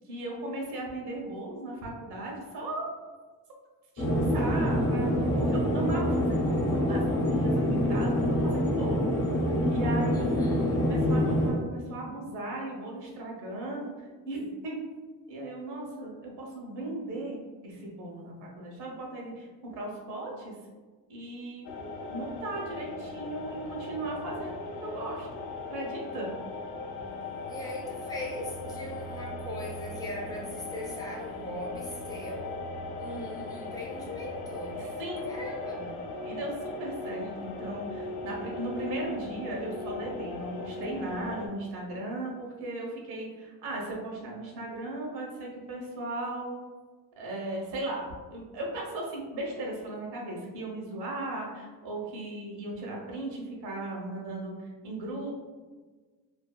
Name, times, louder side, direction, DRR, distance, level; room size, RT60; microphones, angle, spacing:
voice 1, 0.0-2.9 3.9-5.1 5.4-9.1 9.7-10.3 10.9-14.8 15.3-17.4 17.6-20.5 21.1-21.7 22.1-25.3 25.7-26.3 34.7-35.3 36.2-46.6 47.2-54.5 54.8-55.3, right 2 dB, 90° right, -2 dB, 0.9 m, -37 dB
sound 1, 4.0-11.5, equal, 40° left, 0.7 m, -26 dB
voice 2, 10.1-10.8 27.5-32.6 33.0-34.9 35.3-36.1, left 1 dB, 10° left, -4 dB, 0.4 m, -39 dB
sound 2, 21.6-41.5, left 2 dB, 80° left, 0.5 m, -39 dB
2.6 x 2.4 x 2.2 m, 1.4 s
cardioid pair, 155°, 38 cm